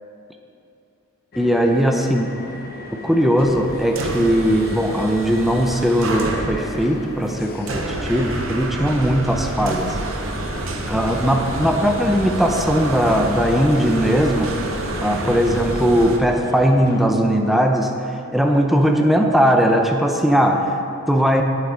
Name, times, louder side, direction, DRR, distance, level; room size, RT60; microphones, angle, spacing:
sound 1, 1.3-17.1, left 1 dB, 50° left, 0.7 m, -35 dB
voice 1, 1.4-2.3 3.0-9.9 10.9-14.7 15.0-17.9 18.3-20.7 21.1-21.4, equal, ahead, 2 dB, 0.5 m, -19 dB
sound 2, 3.4-16.2, right 2 dB, 70° right, 0.8 m, -29 dB
8.8 x 7.3 x 3.8 m, 2.7 s
head